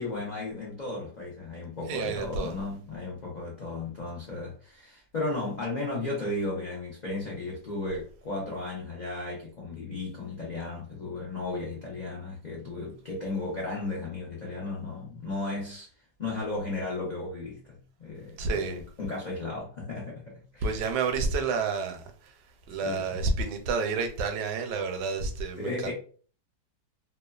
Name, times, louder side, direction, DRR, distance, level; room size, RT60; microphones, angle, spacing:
voice 1, 0.0-15.9 16.2-20.9 22.7-23.2 25.6-25.9, left 2 dB, 90° left, 0.4 m, -35 dB
voice 2, 1.9-2.5 18.4-18.8 20.6-22.4 22.7-25.9, right 4 dB, 80° right, 1.2 m, -29 dB
3.0 x 2.2 x 2.3 m
omnidirectional pair, 1.9 m